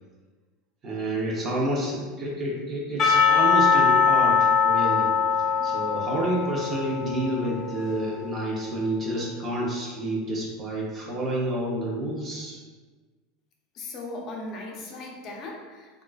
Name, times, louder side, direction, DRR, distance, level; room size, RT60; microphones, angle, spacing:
voice 1, 0.8-5.1 5.6-12.6, right 1 dB, 25° right, -4 dB, 0.8 m, -29 dB
Percussion / Church bell, 3.0-8.2, left 6 dB, 25° left, 1.0 m, -22 dB
voice 2, 13.7-16.0, left 2 dB, 40° left, -1 dB, 0.6 m, -38 dB
3.7 x 2.4 x 2.4 m, 1.4 s
supercardioid pair, 145°, 0 cm